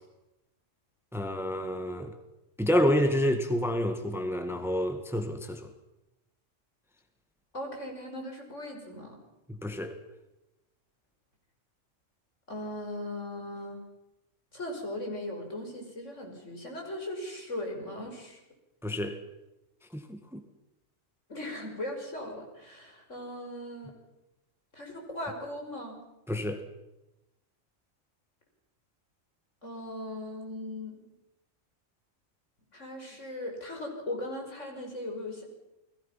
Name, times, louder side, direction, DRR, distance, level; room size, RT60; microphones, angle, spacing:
voice 1, 1.1-2.1 2.6-5.7 9.5-10.0 18.8-19.2 19.9-20.4 26.3-26.6, equal, ahead, 1.8 m, -29 dB
voice 2, 7.5-9.2 12.5-13.8 14.5-18.4 21.3-24.0 24.7-26.0 29.6-31.0 32.7-35.4, left 1 dB, 60° left, 6.1 m, -38 dB
29.5 x 21.0 x 5.8 m
omnidirectional pair, 1.4 m